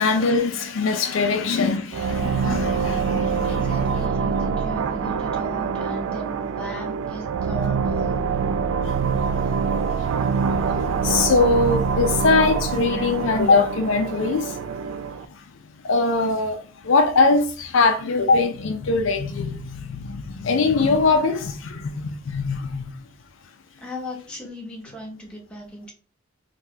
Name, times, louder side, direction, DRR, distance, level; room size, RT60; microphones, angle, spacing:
voice 1, 0.0-3.7 8.8-8.9 10.2-14.6 15.3-15.4 15.8-23.0, left 3 dB, 65° left, 0.4 m, -22 dB
sound 1, 1.9-15.3, right 5 dB, 75° right, 0.3 m, -25 dB
voice 2, 3.5-8.2 23.8-25.9, equal, 5° left, 0.8 m, -36 dB
2.8 x 2.2 x 3.5 m
head